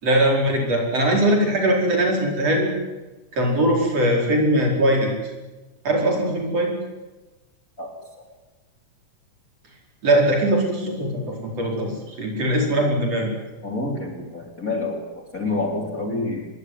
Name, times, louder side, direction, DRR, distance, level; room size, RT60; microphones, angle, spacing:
voice 1, 0.0-2.7 3.3-5.1 5.9-6.7 10.0-13.3, right 1 dB, 45° right, 0 dB, 5.6 m, -21 dB
voice 2, 13.6-16.5, left 2 dB, 25° left, 1 dB, 3.8 m, -28 dB
26.5 x 20.5 x 9.6 m, 1.2 s
omnidirectional pair, 4.0 m